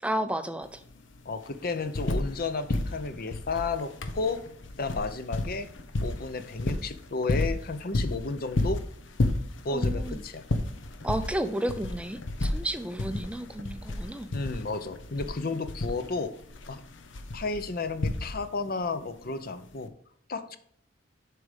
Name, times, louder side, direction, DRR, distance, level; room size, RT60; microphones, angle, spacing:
voice 1, 0.0-0.8 9.7-10.2 11.0-14.3, right 1 dB, 5° right, 10 dB, 0.4 m, -32 dB
sound 1, 0.6-0.7 1.0-2.4 2.7-18.7 19.7-19.8, left 2 dB, 90° left, 0.9 m, -31 dB
voice 2, 1.2-4.4 4.7-5.7 6.0-8.8 9.6-10.4 14.3-16.3 16.7-16.8 17.3-19.9 20.3-20.6, left 3 dB, 55° left, 11 dB, 0.8 m, -32 dB
7.8 x 4.9 x 5.0 m, 0.67 s
head